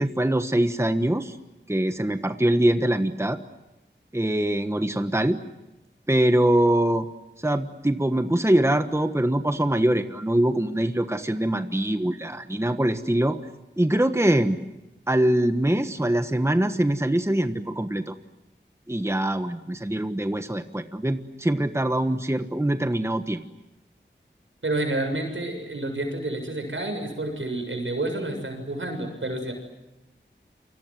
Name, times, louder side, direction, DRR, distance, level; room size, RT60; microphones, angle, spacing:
voice 1, 0.0-1.4 1.7-3.4 4.1-5.4 6.1-7.1 7.4-13.4 13.8-14.6 15.1-18.1 18.9-23.4, right 1 dB, 15° right, 8 dB, 1.3 m, -23 dB
voice 2, 24.6-29.5, right 2 dB, 80° right, 5 dB, 7.2 m, -29 dB
29.0 x 24.5 x 7.8 m, 0.97 s
wide cardioid pair, 55°, 20 cm